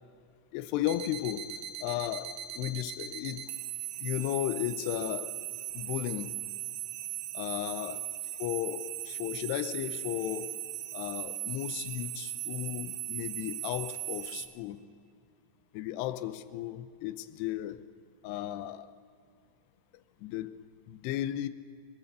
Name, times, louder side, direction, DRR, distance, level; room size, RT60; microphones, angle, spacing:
voice 1, 0.5-3.5 4.0-5.5 5.7-6.4 7.3-8.0 8.4-10.6 10.9-14.8 15.7-17.9 18.2-18.9 20.2-21.5, left 13 dB, 85° left, 2.4 m, -35 dB
sound 1, 0.8-14.5, right 13 dB, 70° right, 3.2 m, -38 dB
23.0 x 22.0 x 6.8 m
omnidirectional pair, 5.8 m